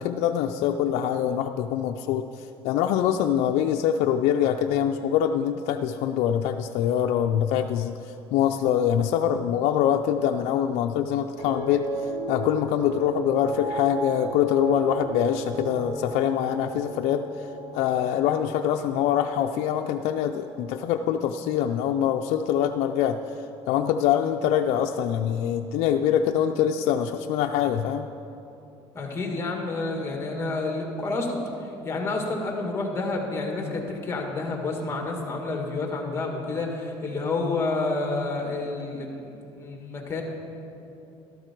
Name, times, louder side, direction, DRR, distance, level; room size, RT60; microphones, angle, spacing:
voice 1, 0.0-23.2 23.7-28.1, left 9 dB, 75° left, 4 dB, 0.5 m, -24 dB
sound 1, 11.4-21.7 22.0-22.6, right 2 dB, 80° right, 2.3 m, -36 dB
voice 2, 28.9-40.2, left 3 dB, 25° left, 1 dB, 2.1 m, -29 dB
12.5 x 12.5 x 4.6 m, 2.8 s
cardioid pair, 120°, 11 cm